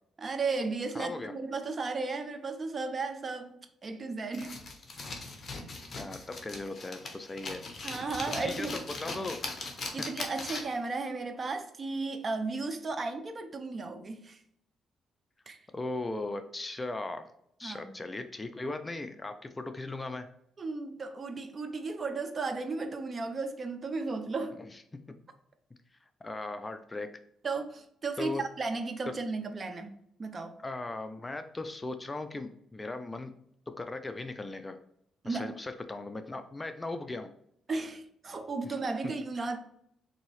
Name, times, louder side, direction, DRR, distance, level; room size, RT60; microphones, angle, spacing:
voice 1, 0.2-4.6 7.8-8.7 9.9-14.4 15.5-15.6 17.6-17.9 20.6-24.6 27.4-29.9 30.2-30.5 35.2-35.5 37.7-39.6, right 3 dB, 35° right, 0.5 m, -34 dB
voice 2, 0.9-1.3 6.0-7.6 8.4-8.7 9.0-9.4 15.7-17.2 17.6-20.3 26.2-27.1 28.2-28.4 30.6-33.3 33.8-34.8 35.2-37.3, left 2 dB, 20° left, 0.3 m, -38 dB
sound 1, 4.3-10.9, left 3 dB, 40° left, 0.8 m, -40 dB
3.9 x 2.7 x 3.0 m
cardioid pair, 90°, 0 cm